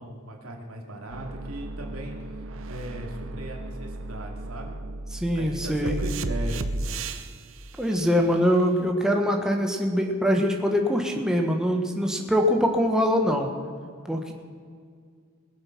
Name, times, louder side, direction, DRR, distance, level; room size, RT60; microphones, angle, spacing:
voice 1, 0.0-2.2 2.7-4.8 5.3-6.6, right 1 dB, 80° right, 1 dB, 2.5 m, -38 dB
sound 1, 1.1-7.4 8.9-9.0, right 2 dB, 65° right, 0.7 m, -34 dB
voice 2, 5.1-6.0 7.8-13.5 14.1-14.3, equal, 5° right, 1 dB, 1.3 m, -23 dB
21.0 x 7.9 x 5.9 m, 2.1 s
head